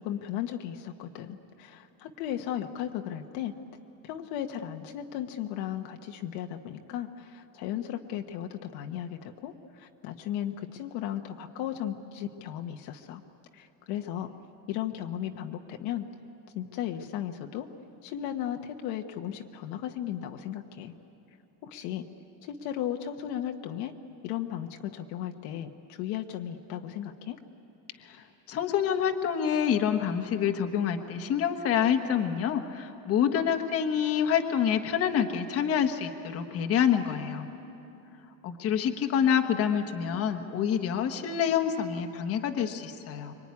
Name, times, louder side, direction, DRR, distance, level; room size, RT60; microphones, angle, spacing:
voice 1, 0.0-3.6 4.0-13.2 13.5-14.3 14.7-16.1 16.5-17.7 18.0-20.9 21.6-22.0 22.4-23.9 24.2-27.4, left 11 dB, 55° left, 5 dB, 1.3 m, -35 dB
voice 2, 28.5-37.5 38.4-43.3, left 8 dB, 30° left, 6 dB, 1.3 m, -27 dB
25.5 x 24.0 x 9.7 m, 3.0 s
cardioid pair, 165°, 44 cm